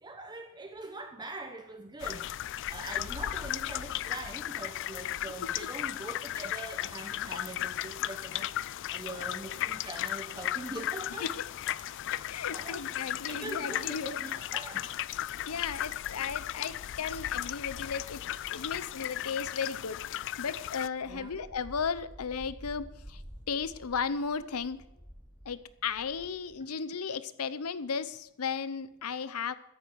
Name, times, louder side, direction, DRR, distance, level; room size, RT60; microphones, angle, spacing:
voice 1, 0.0-11.3 12.5-12.8 13.3-14.9 21.1-21.3, right 2 dB, 20° right, 6 dB, 0.9 m, -43 dB
sound 1, 2.0-20.9, left 13 dB, 55° left, 0.3 m, -36 dB
voice 2, 12.1-14.2 15.4-18.2 18.5-23.2 23.5-24.8 25.5-29.5, left 6 dB, 80° left, 15 dB, 0.7 m, -35 dB
sound 2, 18.3-19.5 20.1-26.6, equal, 10° left, 6.2 m, -51 dB
13.5 x 11.0 x 4.7 m, 0.92 s
head